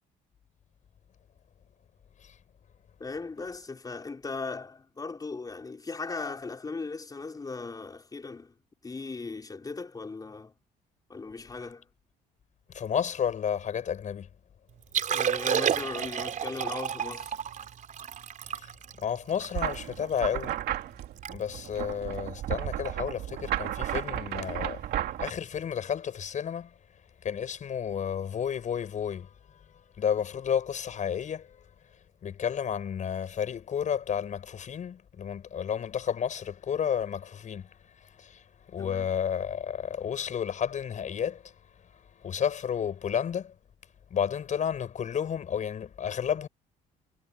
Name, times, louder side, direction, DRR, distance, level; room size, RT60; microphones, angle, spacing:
voice 1, 3.0-8.5 8.8-10.5 11.1-11.9 15.1-17.3 38.8-39.1, left 4 dB, 20° left, 5.0 m, -38 dB
voice 2, 12.7-14.3 18.5-18.7 19.0-20.6 21.3-24.8 25.2-26.7 27.2-29.3 30.0-31.6 32.2-37.7 38.2-38.4 38.7-41.5 42.2-43.5 44.1-46.5, left 8 dB, 45° left, 7.4 m, -31 dB
Liquid, 14.8-20.2 20.7-20.8 21.0-21.3 21.6-21.8 22.4-22.7 24.1-24.2, right 8 dB, 50° right, 4.2 m, -31 dB
sound 1, 19.5-25.3, right 12 dB, 70° right, 2.4 m, -33 dB
cardioid pair, 110°, 17 cm